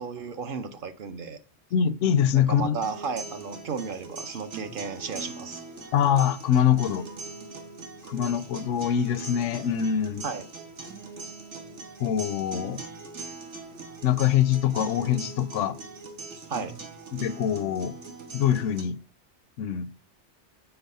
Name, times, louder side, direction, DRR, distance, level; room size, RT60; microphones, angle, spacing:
voice 1, 0.0-1.4 2.3-5.6 10.2-10.5 16.5-16.7, right 5 dB, 55° right, 0.7 m, -34 dB
voice 2, 1.7-2.8 5.9-7.0 8.0-10.2 12.0-12.8 14.0-15.8 17.1-17.9 18.3-19.0 19.6-19.9, left 9 dB, 85° left, 0.9 m, -24 dB
sound 1, 2.8-18.8, right 3 dB, 75° right, 1.4 m, -41 dB
6.9 x 4.0 x 5.4 m
omnidirectional pair, 1.2 m